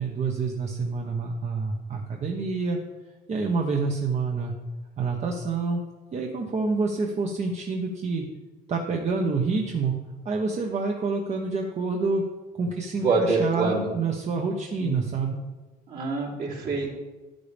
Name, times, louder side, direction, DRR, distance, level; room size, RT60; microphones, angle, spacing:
voice 1, 0.0-2.8 3.3-4.5 5.0-5.8 6.1-8.3 8.7-9.9 10.2-12.2 12.5-15.4, right 4 dB, 40° right, 1 dB, 1.2 m, -27 dB
voice 2, 13.0-13.9 14.8-15.0 15.9-16.9, right 3 dB, 60° right, -4 dB, 3.4 m, -25 dB
11.0 x 9.3 x 3.6 m, 1.2 s
cardioid pair, 110°, 17 cm